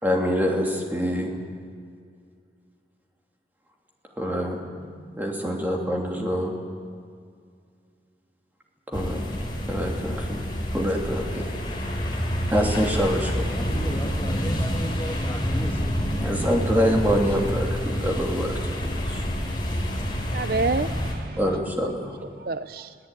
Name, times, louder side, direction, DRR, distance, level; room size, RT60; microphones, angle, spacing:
voice 1, 0.0-1.3 4.2-6.5 8.9-9.2 9.7-10.4 10.7-11.4 12.0-13.5 16.2-19.2 21.4-22.1, equal, 10° right, 2.9 m, -26 dB
sound 1, 8.9-21.1, equal, 25° left, 4.1 m, -28 dB
voice 2, 13.5-17.2, equal, 10° left, 2.2 m, -37 dB
voice 3, 20.3-21.9 22.4-23.0, right 3 dB, 55° right, 0.6 m, -29 dB
22.5 x 16.5 x 9.2 m
head